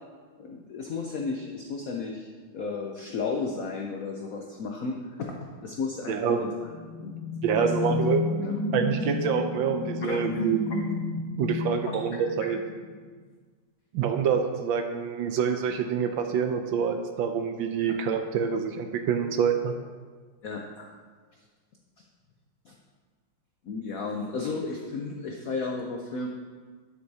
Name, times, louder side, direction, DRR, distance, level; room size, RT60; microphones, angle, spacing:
voice 1, 0.4-5.3 5.6-6.7 7.0-7.1 7.5-8.0 8.4-8.9 10.0-10.3 10.7-10.8 11.8-12.0 12.4-12.5 17.8-18.0 20.4-20.9 22.6-22.7 23.6-26.3, left 4 dB, 90° left, 1 dB, 0.7 m, -34 dB
voice 2, 6.1-6.5 7.4-8.2 8.7-10.7 11.4-12.6 13.9-19.7, right 7 dB, 75° right, 6 dB, 1.3 m, -26 dB
sound 1, 6.5-13.0, left 4 dB, 65° left, 1.5 m, -31 dB
9.7 x 8.0 x 2.7 m, 1.5 s
omnidirectional pair, 2.3 m